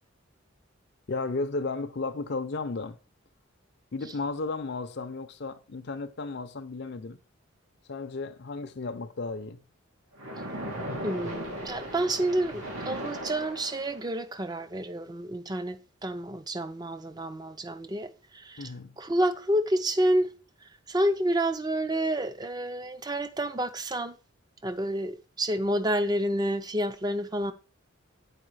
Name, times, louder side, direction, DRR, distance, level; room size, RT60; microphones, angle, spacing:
voice 1, 1.1-3.0 3.9-7.2 7.9-9.6 18.6-19.0, left 3 dB, 55° left, 0.6 m, -34 dB
Splash splatter, 10.2-14.2, equal, 90° right, 2.3 m, -37 dB
voice 2, 11.0-18.7 19.0-20.3 20.9-24.2 24.6-27.5, right 1 dB, 20° right, 0.5 m, -29 dB
9.0 x 4.7 x 4.8 m
head